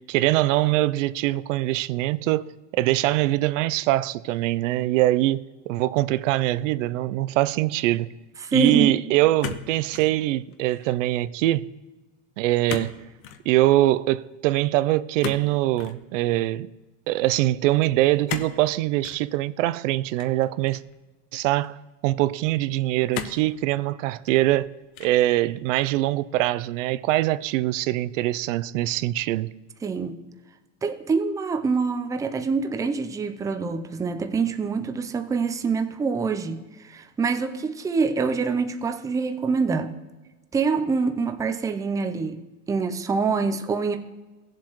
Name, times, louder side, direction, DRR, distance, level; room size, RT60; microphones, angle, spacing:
voice 1, 0.1-2.4 2.7-8.1 8.5-11.7 12.4-13.0 13.5-16.7 17.1-20.8 21.3-21.8 22.0-24.7 25.0-29.5, right 16 dB, 80° right, 0.5 m, -23 dB
voice 2, 8.4-9.0 29.8-30.2 30.8-39.9 40.5-42.4 42.7-44.0, right 4 dB, 10° right, 0.5 m, -25 dB
sound 1, 9.4-10.2 10.5-11.0 12.7-13.0 13.2-13.5 15.2-16.0 18.3-18.6 19.0-19.2 20.2-20.9 21.6-21.7 23.1-23.5 24.1-24.6 24.9-25.3, left 8 dB, 60° left, 1.0 m, -35 dB
16.0 x 7.4 x 3.0 m
supercardioid pair, 125°, 38 cm